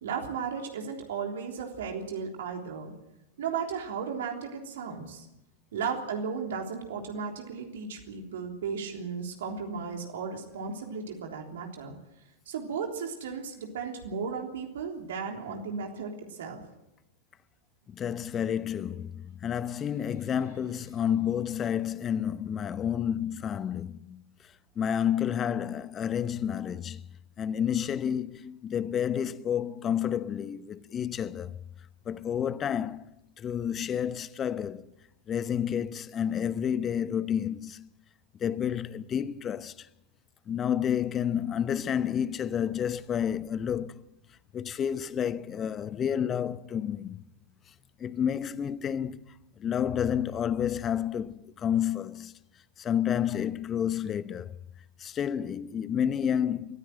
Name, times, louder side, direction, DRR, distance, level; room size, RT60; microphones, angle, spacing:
voice 1, 0.0-2.9 3.4-5.3 5.7-12.0 12.5-16.6, right 6 dB, 60° right, 3.5 m, -35 dB
voice 2, 17.9-24.2 24.8-27.0 27.4-31.5 32.1-33.1 33.4-34.9 35.3-37.9 38.4-39.7 40.5-44.0 44.5-47.2 48.0-49.2 49.6-52.3 52.8-54.6 55.0-56.8, left 9 dB, 25° left, 0.9 m, -30 dB
23.5 x 15.5 x 7.8 m
figure-of-eight pair, 90°, 0 cm